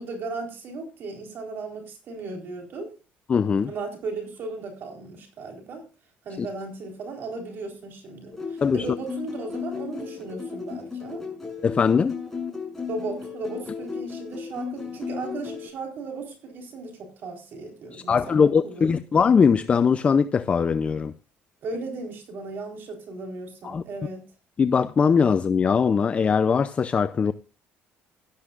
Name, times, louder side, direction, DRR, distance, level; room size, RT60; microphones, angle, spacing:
voice 1, 0.0-2.9 3.6-5.8 6.2-11.2 12.9-18.9 21.6-24.2, right 3 dB, 55° right, 4.0 m, -36 dB
voice 2, 3.3-3.7 6.4-6.5 8.6-8.8 11.6-12.1 17.9-21.1 23.6-23.8 24.6-27.3, left 6 dB, 30° left, 0.5 m, -21 dB
sound 1, 8.3-15.7, left 5 dB, 5° left, 6.7 m, -35 dB
17.0 x 12.0 x 2.5 m
cardioid pair, 125°, 4 cm